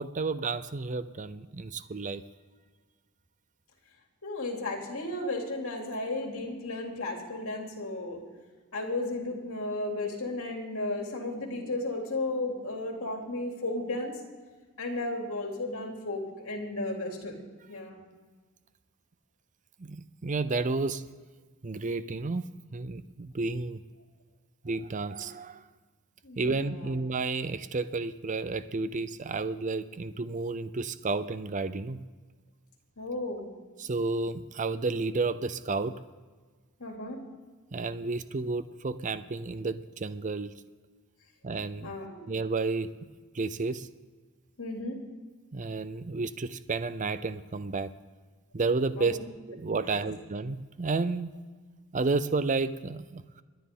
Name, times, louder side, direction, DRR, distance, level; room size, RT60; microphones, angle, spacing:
voice 1, 0.0-2.2 19.8-21.0 21.6-23.8 24.6-25.6 26.4-32.0 33.8-36.0 37.7-40.5 41.4-41.9 42.3-43.1 43.3-43.9 45.5-47.9 48.5-49.2 49.5-51.4 51.9-53.4, right 3 dB, 35° right, 13 dB, 0.6 m, -31 dB
voice 2, 4.2-8.2 8.7-14.1 14.8-17.4 17.7-18.0 26.2-26.9 33.0-33.5 36.8-37.2 41.8-42.2 44.6-45.0 49.0-49.2 49.8-50.1, left 2 dB, 70° left, 1 dB, 3.0 m, -34 dB
28.5 x 10.5 x 3.8 m, 1.4 s
head